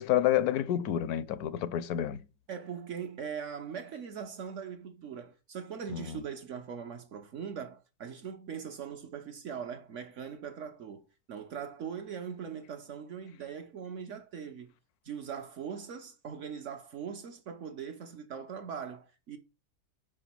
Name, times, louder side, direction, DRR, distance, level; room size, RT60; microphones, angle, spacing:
voice 1, 0.0-2.2 5.9-6.2, left 11 dB, 75° left, 1.1 m, -29 dB
voice 2, 2.5-14.7 15.0-19.4, right 7 dB, 60° right, 1.0 m, -41 dB
5.1 x 5.0 x 5.8 m
omnidirectional pair, 1.7 m